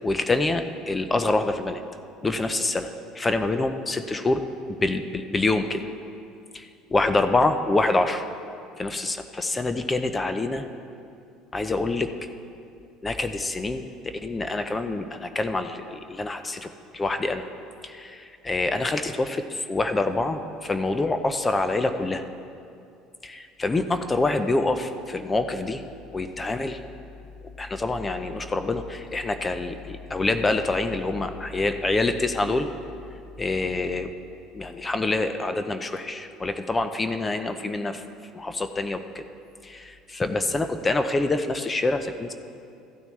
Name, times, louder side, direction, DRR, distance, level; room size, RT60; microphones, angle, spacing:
voice 1, 0.0-1.8 2.2-4.4 4.7-5.9 6.5-8.2 8.8-10.6 11.5-12.1 13.0-17.4 17.8-22.2 23.2-25.8 26.1-26.8 27.6-32.7 33.4-34.1 34.5-38.0 38.3-39.2 39.6-42.3, left 2 dB, 20° left, 8 dB, 0.5 m, -26 dB
14.5 x 9.0 x 3.2 m, 2.5 s
supercardioid pair, 100°, 0 cm